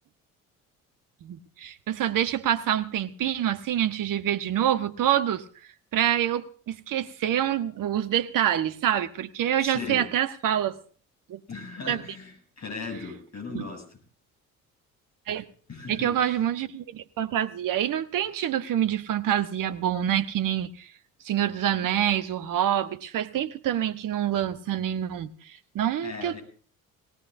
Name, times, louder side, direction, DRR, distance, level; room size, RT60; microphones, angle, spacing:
voice 1, 1.2-5.4 5.9-10.8 11.3-11.4 11.9-12.0 13.5-13.6 15.3-15.4 15.9-20.9 21.2-26.4, right 10 dB, 50° right, 11 dB, 1.2 m, -26 dB
voice 2, 9.6-10.1 11.5-13.8 15.7-16.1 26.0-26.4, left 4 dB, 40° left, 3 dB, 7.9 m, -37 dB
18.5 x 18.0 x 2.7 m, 0.42 s
figure-of-eight pair, 50°, 42 cm